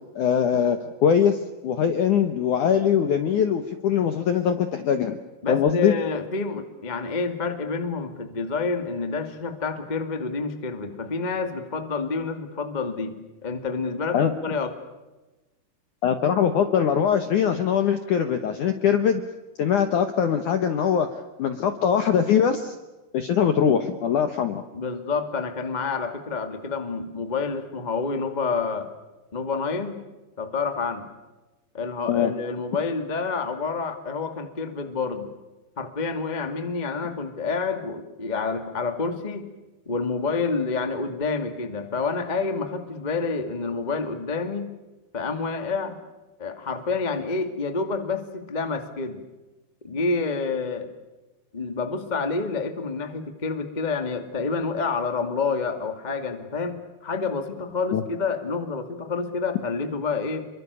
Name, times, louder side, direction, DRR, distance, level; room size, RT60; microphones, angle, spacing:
voice 1, 0.2-5.2 5.5-5.9 14.1-14.3 16.0-19.2 19.6-22.8 23.1-24.6 32.1-32.3 57.9-58.0, left 8 dB, 70° left, 9 dB, 1.9 m, -22 dB
voice 2, 5.4-13.2 13.4-14.7 24.7-28.9 29.3-30.0 30.4-31.1 31.7-35.3 35.8-39.5 39.8-44.7 45.1-46.0 46.4-49.2 49.8-50.9 51.5-60.4, left 4 dB, 30° left, 8 dB, 0.7 m, -28 dB
28.5 x 24.0 x 7.0 m, 1.1 s
omnidirectional pair, 5.3 m